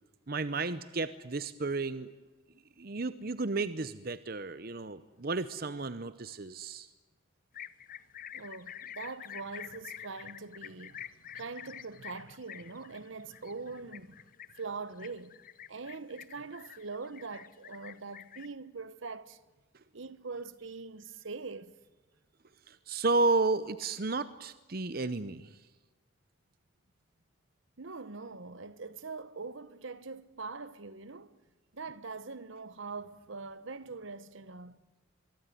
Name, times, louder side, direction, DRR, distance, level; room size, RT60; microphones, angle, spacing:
voice 1, 0.3-2.1 2.8-6.9 22.7-25.7, right 3 dB, 45° right, 0.8 m, -32 dB
sound 1, 7.5-18.5, left 10 dB, 40° left, 0.8 m, -47 dB
voice 2, 8.3-14.2 14.5-15.4 15.7-19.4 19.9-21.7 27.8-31.4 31.7-34.8, right 4 dB, 70° right, 1.1 m, -43 dB
24.5 x 23.5 x 9.3 m
head